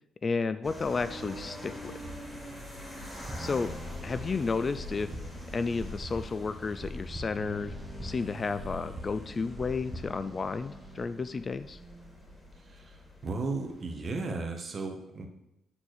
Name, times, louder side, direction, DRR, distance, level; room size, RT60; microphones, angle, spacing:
voice 1, 0.2-1.9 3.4-3.7 4.0-5.1 5.5-7.7 8.0-11.8, left 4 dB, 35° left, 13 dB, 0.4 m, -32 dB
sound 1, 0.6-14.1, equal, 15° left, 2.6 m, -45 dB
sound 2, 3.1-10.5, equal, 20° right, 1.0 m, -43 dB
sound 3, 3.3-11.3, left 2 dB, 5° right, 1.8 m, -46 dB
voice 2, 12.6-15.3, right 3 dB, 40° right, 4 dB, 1.3 m, -35 dB
7.2 x 4.4 x 6.4 m, 0.88 s
cardioid pair, 90°, 0 cm